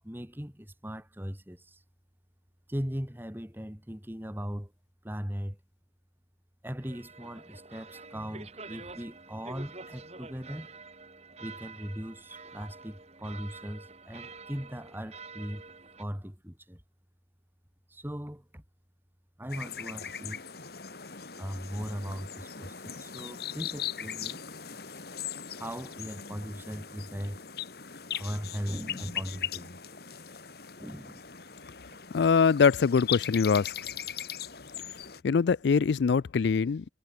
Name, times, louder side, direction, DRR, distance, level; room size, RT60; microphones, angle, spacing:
voice 1, 0.0-1.8 2.7-4.7 5.0-5.6 6.6-10.7 11.4-15.7 16.0-16.8 17.9-18.6 19.4-20.5 21.4-24.4 25.6-27.4 28.1-29.8 30.8-31.3, equal, 10° right, 3.0 m, -39 dB
sound 1, 6.8-16.0, right 4 dB, 35° right, 5.0 m, -47 dB
sound 2, 19.5-35.2, left 9 dB, 55° left, 2.2 m, -39 dB
voice 2, 32.1-33.7 35.2-36.8, left 5 dB, 75° left, 0.4 m, -23 dB
head